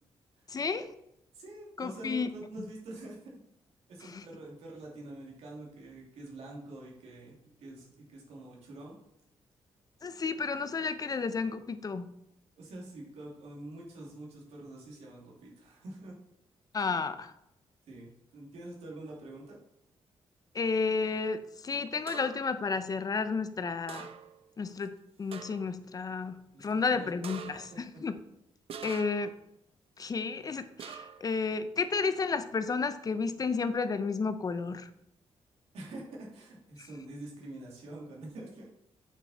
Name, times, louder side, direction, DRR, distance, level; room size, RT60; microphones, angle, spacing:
voice 1, 0.5-0.9 1.8-2.3 4.0-4.2 10.0-12.1 16.7-17.3 20.5-24.1 24.6-24.9 25.2-28.2 28.8-29.3 30.0-34.9 36.8-36.9, left 4 dB, 35° left, 11 dB, 0.6 m, -32 dB
voice 2, 1.3-3.2 3.9-9.0 12.5-16.1 16.8-16.9 17.9-19.6 26.5-27.1 27.5-28.0 35.7-38.7, right 2 dB, 90° right, -3 dB, 2.7 m, -46 dB
sound 1, 22.1-22.5 23.9-24.5 24.8-24.9 25.3-25.8 27.2-27.8 28.7-29.4 30.8-31.3, right 7 dB, 65° right, 0.7 m, -45 dB
8.3 x 5.8 x 4.2 m, 0.78 s
cardioid pair, 105°, 10 cm